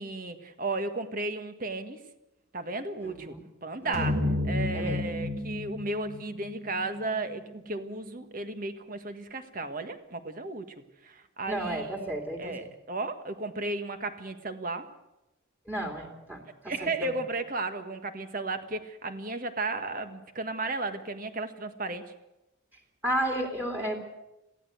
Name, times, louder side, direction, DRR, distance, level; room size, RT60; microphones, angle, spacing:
voice 1, 0.0-2.0 2.5-3.3 3.6-10.7 11.0-12.1 12.4-14.9 16.7-22.0, right 2 dB, 40° right, 9 dB, 1.6 m, -34 dB
voice 2, 3.0-3.4 3.8-4.1 4.7-5.0 11.5-12.5 15.7-16.4 16.8-17.1 23.0-24.0, right 1 dB, 10° right, 2 dB, 2.7 m, -32 dB
sound 1, 3.9-8.3, left 1 dB, 75° right, 3.2 m, -32 dB
22.0 x 16.0 x 8.1 m, 0.95 s
head